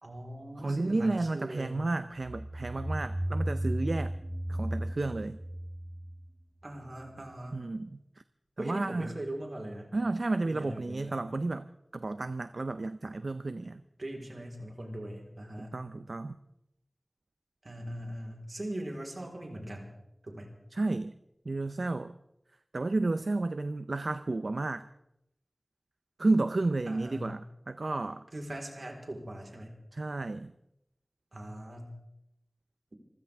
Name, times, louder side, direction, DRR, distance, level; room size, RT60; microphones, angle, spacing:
voice 1, 0.0-1.8 6.6-7.6 8.6-9.9 10.4-11.1 14.0-15.8 17.6-19.9 20.2-20.5 26.9-27.3 28.3-29.7 31.3-31.9, right 1 dB, 70° right, 1 dB, 4.0 m, -40 dB
voice 2, 0.6-4.1 4.5-5.4 7.5-8.0 8.6-9.1 9.9-11.7 11.9-13.8 15.7-16.4 20.7-21.1 21.5-22.1 22.7-24.9 26.2-28.3 29.9-30.5, right 2 dB, 85° right, 12 dB, 0.5 m, -32 dB
sound 1, 2.2-6.8, right 1 dB, 40° right, 4.0 m, -34 dB
26.5 x 15.5 x 3.5 m, 0.83 s
wide cardioid pair, 55°, 0 cm